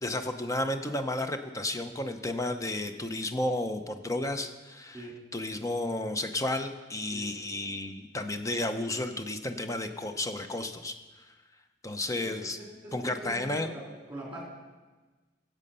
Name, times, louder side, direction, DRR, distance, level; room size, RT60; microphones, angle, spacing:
voice 1, 0.0-5.1 5.3-10.9 11.8-12.6 12.9-13.7, left 1 dB, 15° left, 7 dB, 0.6 m, -32 dB
voice 2, 12.2-13.8 14.1-14.4, right 1 dB, 10° right, -3 dB, 3.2 m, -42 dB
15.5 x 7.6 x 5.4 m, 1.3 s
head